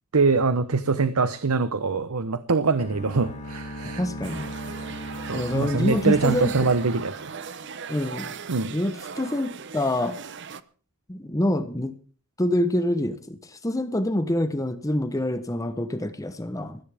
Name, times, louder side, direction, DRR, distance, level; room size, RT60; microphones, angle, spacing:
voice 1, 0.1-4.0 5.3-7.3 8.5-8.7, right 4 dB, 85° right, 13 dB, 0.9 m, -23 dB
sound 1, 2.7-7.7, equal, 35° left, 4.0 m, -38 dB
voice 2, 4.0-4.5 5.3-6.7 7.9-8.4 8.7-10.2 11.1-11.9 12.4-16.8, left 1 dB, 15° left, 10 dB, 0.9 m, -26 dB
sound 2, 4.2-10.6, right 6 dB, 55° right, 0.8 m, -38 dB
21.0 x 15.0 x 3.5 m, 0.40 s
head